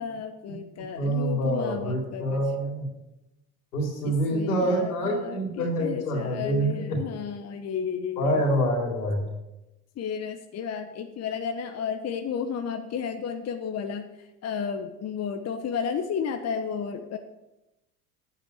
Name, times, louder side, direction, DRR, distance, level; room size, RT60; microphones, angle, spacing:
voice 1, 0.0-2.4 4.0-8.4 10.0-17.2, left 7 dB, 35° left, 7 dB, 1.1 m, -33 dB
voice 2, 1.0-2.9 3.7-7.0 8.2-9.3, right 1 dB, 80° left, 1 dB, 3.6 m, -26 dB
10.5 x 8.8 x 6.8 m, 0.96 s
hypercardioid pair, 70°, 45 cm